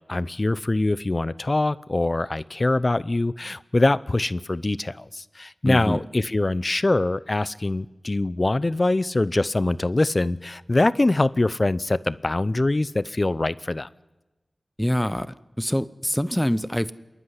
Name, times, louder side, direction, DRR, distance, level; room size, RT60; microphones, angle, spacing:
voice 1, 0.1-13.9, left 2 dB, 45° left, 18 dB, 0.6 m, -23 dB
voice 2, 5.7-6.0 14.8-16.9, equal, 10° left, 16 dB, 0.8 m, -25 dB
27.0 x 11.0 x 9.9 m, 1.1 s
cardioid pair, 45°, 0 cm